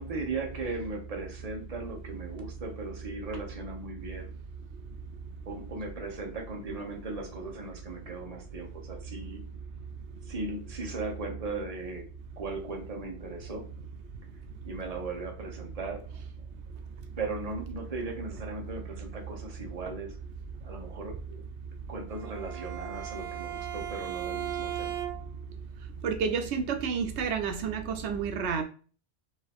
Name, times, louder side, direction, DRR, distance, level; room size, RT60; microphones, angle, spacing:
voice 1, 0.0-4.3 5.5-9.4 10.2-12.1 12.4-13.6 14.6-16.0 17.2-20.2 20.6-21.4 21.9-25.0, right 3 dB, 35° right, 1.0 m, -38 dB
Bowed string instrument, 22.1-25.5, right 11 dB, 55° right, 0.5 m, -37 dB
voice 2, 26.0-28.6, right 6 dB, 80° right, 0.9 m, -30 dB
4.9 x 2.6 x 3.5 m
omnidirectional pair, 1.1 m